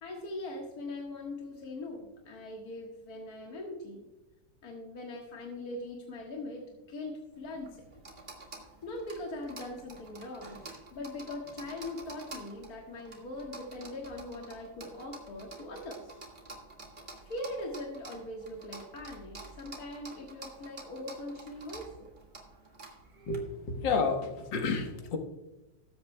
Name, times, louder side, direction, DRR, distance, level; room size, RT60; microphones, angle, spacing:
voice 1, 0.0-4.0 4.6-7.8 8.8-16.2 17.2-22.1, left 2 dB, 55° left, -1 dB, 1.9 m, -41 dB
sound 1, 7.3-23.4, right 3 dB, 25° right, 1.9 m, -49 dB
voice 2, 23.3-25.2, left 4 dB, 80° left, 4 dB, 1.9 m, -30 dB
19.5 x 8.4 x 2.2 m, 0.99 s
omnidirectional pair, 2.0 m